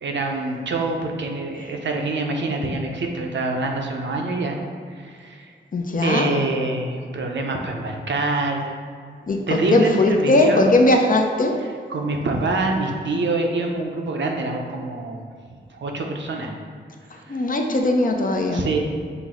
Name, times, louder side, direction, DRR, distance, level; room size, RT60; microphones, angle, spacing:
voice 1, 0.0-4.6 5.0-5.5 6.0-8.7 9.5-10.6 11.9-15.2 15.7-16.5 17.1-17.4 18.5-18.8, right 2 dB, 70° right, 2 dB, 0.6 m, -25 dB
voice 2, 5.7-6.3 9.3-11.6 17.3-18.7, left 2 dB, 45° left, 3 dB, 0.5 m, -19 dB
5.8 x 2.1 x 3.6 m, 2.1 s
cardioid pair, 55°, 20 cm